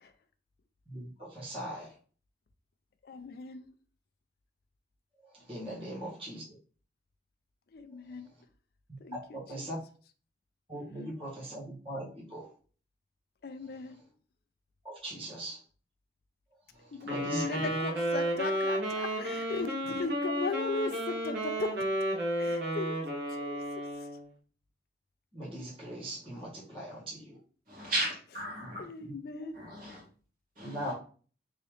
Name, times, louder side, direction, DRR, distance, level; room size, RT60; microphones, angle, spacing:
voice 1, 0.9-1.9 5.3-6.4 9.3-9.8 10.7-12.5 14.8-15.6 17.0-17.7 25.3-27.4 28.6-28.7 29.0-29.1 30.6-30.9, right 1 dB, 30° right, 1.7 m, -40 dB
voice 2, 3.0-3.7 7.7-8.3 9.0-9.7 13.4-13.9 16.9-21.7 22.4-23.6 28.8-29.6, left 3 dB, 60° left, 0.4 m, -38 dB
Wind instrument woodwind instrument, 17.0-24.2, equal, 70° right, 1.3 m, -32 dB
voice 3, 27.7-28.9 29.5-30.0 30.6-30.9, right 1 dB, 50° right, 2.0 m, -35 dB
3.7 x 2.9 x 3.2 m
head